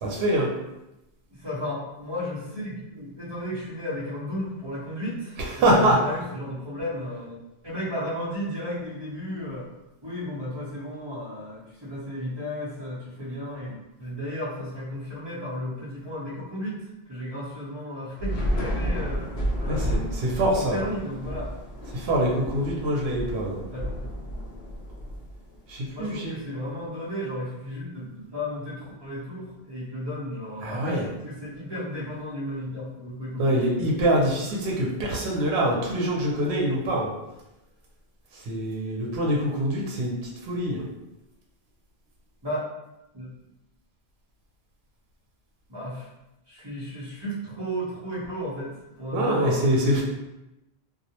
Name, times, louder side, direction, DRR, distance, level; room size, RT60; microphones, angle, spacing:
voice 1, 0.0-0.5 5.4-6.0 19.7-20.8 21.9-23.6 25.7-26.4 30.6-31.0 33.4-37.1 38.5-40.1 40.4-40.8 49.1-50.0, right 1 dB, 80° right, -2 dB, 0.8 m, -24 dB
voice 2, 1.3-7.4 7.6-9.7 10.0-16.8 17.1-19.3 19.6-19.8 20.6-21.5 23.7-23.9 25.9-33.7 42.4-42.7 43.1-43.3 45.7-46.1 46.5-50.0, equal, 30° right, -7 dB, 0.7 m, -34 dB
Thunder / Rain, 18.2-25.7, equal, 70° left, 0.8 m, -31 dB
2.3 x 2.0 x 2.8 m, 0.93 s
omnidirectional pair, 1.1 m